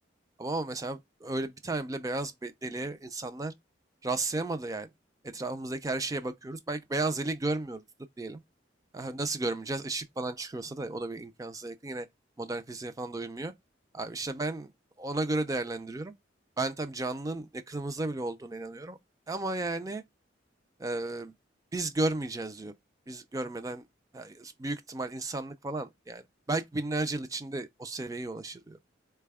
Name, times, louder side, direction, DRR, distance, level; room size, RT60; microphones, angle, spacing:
voice 1, 0.4-3.5 4.0-4.9 5.2-7.8 8.2-8.4 8.9-12.1 12.4-13.5 13.9-14.7 15.0-16.1 16.6-19.0 19.3-20.0 20.8-21.3 21.7-22.7 23.1-23.9 24.1-28.8, right 2 dB, 20° right, 0.4 m, -34 dB
4.0 x 2.2 x 3.4 m
head